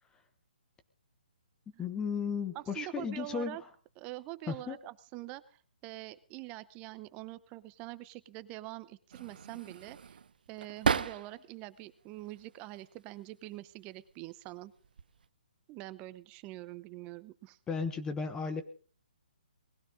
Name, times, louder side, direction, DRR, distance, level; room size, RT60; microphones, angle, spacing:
voice 1, 1.8-3.6 4.5-4.8 17.7-18.6, left 5 dB, 15° left, 9 dB, 1.1 m, -34 dB
voice 2, 2.5-3.6 4.0-10.2 10.5-14.7 15.7-17.6, right 18 dB, 25° right, 16 dB, 0.9 m, -45 dB
sound 1, 9.1-11.6 12.0-12.9 13.8-14.1 14.5-15.3, right 6 dB, 65° right, 0.8 m, -35 dB
20.0 x 16.0 x 3.8 m, 0.40 s
hypercardioid pair, 140°, 5 cm